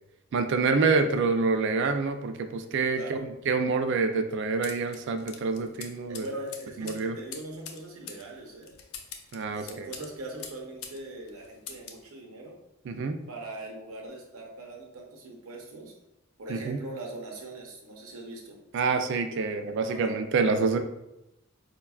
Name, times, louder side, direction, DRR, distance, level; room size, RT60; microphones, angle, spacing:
voice 1, 0.3-3.2 3.5-6.3 6.8-7.2 9.3-9.9 12.9-13.2 16.5-16.8 18.7-20.8, right 4 dB, 55° right, 7 dB, 0.3 m, -27 dB
voice 2, 2.9-3.3 6.1-8.7 9.5-12.6 13.3-15.9 16.4-18.6 19.8-20.2, right 2 dB, 85° right, 0 dB, 0.8 m, -41 dB
sound 1, 4.6-11.0 11.3-12.0, left 7 dB, 75° left, 0.5 m, -44 dB
4.7 x 2.2 x 2.3 m, 0.89 s
head